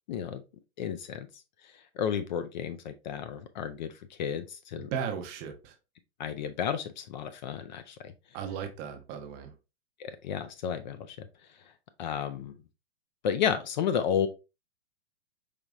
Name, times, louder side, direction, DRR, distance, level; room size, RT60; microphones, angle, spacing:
voice 1, 0.1-0.4 0.8-1.3 1.6-3.9 4.2-4.9 6.2-8.1 10.0-11.3 12.0-12.5 13.2-14.3, left 8 dB, 45° left, 0.4 m, -32 dB
voice 2, 4.7-5.7 8.3-9.5, right 7 dB, 25° right, 0.5 m, -36 dB
4.9 x 3.0 x 2.4 m
hypercardioid pair, 140°, 35 cm